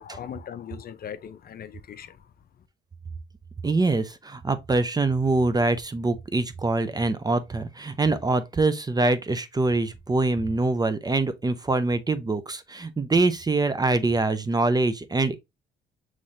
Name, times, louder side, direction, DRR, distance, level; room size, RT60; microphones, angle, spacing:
voice 1, 0.0-2.3, left 9 dB, 50° left, 0.5 m, -39 dB
voice 2, 3.6-15.4, right 3 dB, 20° right, 0.5 m, -24 dB
5.5 x 3.2 x 2.5 m
cardioid pair, 90°, 20 cm